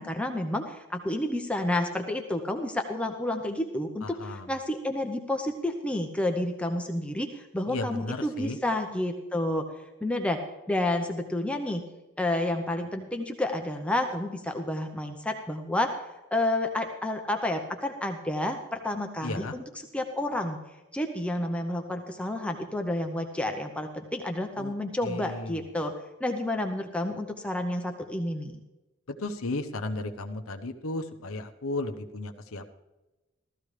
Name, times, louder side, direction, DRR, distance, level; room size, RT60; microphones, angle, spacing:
voice 1, 0.0-9.6 10.0-10.4 10.7-11.8 12.2-16.0 16.3-19.6 19.9-20.6 20.9-25.9 26.2-28.6, left 1 dB, 5° left, 4 dB, 0.7 m, -30 dB
voice 2, 4.0-4.5 7.7-8.6 19.2-19.5 24.6-24.7 25.0-25.7 29.1-32.7, left 2 dB, 85° left, 5 dB, 0.9 m, -34 dB
15.5 x 13.5 x 3.3 m, 1.1 s
head